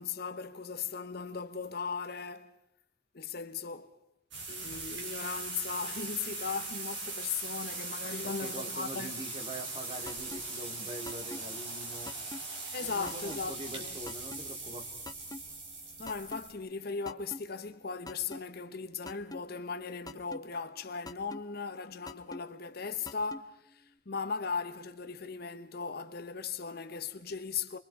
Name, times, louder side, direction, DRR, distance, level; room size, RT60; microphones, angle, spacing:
voice 1, 0.0-2.5 3.1-3.9 4.5-9.2 12.6-13.9 16.0-27.8, left 5 dB, 50° left, 1.1 m, -38 dB
sound 1, 4.3-16.5, right 3 dB, 65° right, 4.3 m, -40 dB
voice 2, 8.2-12.1 12.8-14.9, right 1 dB, 30° right, 2.6 m, -44 dB
sound 2, 10.1-10.4 11.1-11.4 12.1-12.4 13.1-13.4 14.1-14.4 15.1-15.4 16.1-16.4 17.1-17.4 18.1-18.4 19.1-19.4 20.1-20.4 21.1-21.4 22.1-22.4 23.1-23.4, left 2 dB, 20° left, 0.8 m, -42 dB
28.0 x 23.0 x 4.8 m
head